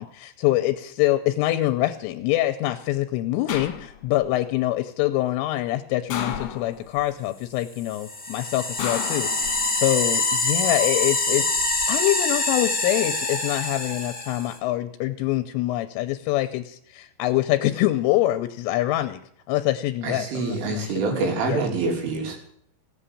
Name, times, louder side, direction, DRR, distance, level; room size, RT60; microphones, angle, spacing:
voice 1, 0.0-11.6 11.9-19.2 19.5-21.0 21.5-21.6, left 15 dB, 80° left, 9 dB, 3.2 m, -25 dB
sound 1, 3.5-4.3 6.1-7.0 8.8-9.9 11.3-11.9, left 8 dB, 60° left, 2.5 m, -33 dB
sound 2, 7.8-14.6, left 2 dB, 5° left, 0.6 m, -25 dB
voice 2, 20.0-22.4, right 3 dB, 70° right, 2 dB, 5.5 m, -26 dB
16.5 x 9.0 x 8.5 m, 0.65 s
omnidirectional pair, 5.9 m